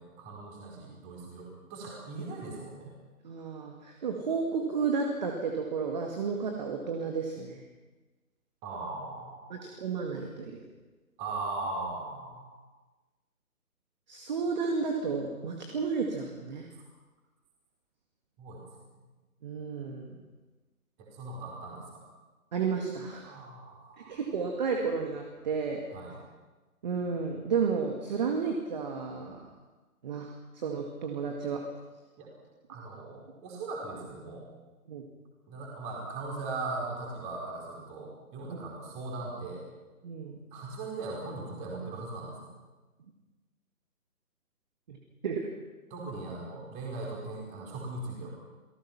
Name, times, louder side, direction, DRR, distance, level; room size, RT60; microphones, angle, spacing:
voice 1, 0.0-2.9 8.6-9.6 11.2-12.6 16.7-16.8 18.4-18.6 18.9-19.1 21.0-22.0 23.2-24.2 25.9-26.2 32.2-32.3 32.7-34.5 35.5-39.7 40.5-42.5 45.9-48.3, right 3 dB, 15° right, -2 dB, 4.6 m, -39 dB
voice 2, 3.2-7.6 9.5-10.6 14.1-16.7 19.4-20.2 22.5-23.4 24.1-25.8 26.8-29.5 30.0-31.7 34.9-35.0 38.5-38.6 40.0-40.4 44.9-45.0 45.2-45.5, right 5 dB, 30° right, 2 dB, 2.1 m, -32 dB
28.5 x 19.0 x 6.0 m, 1.2 s
figure-of-eight pair, 150°, 45 cm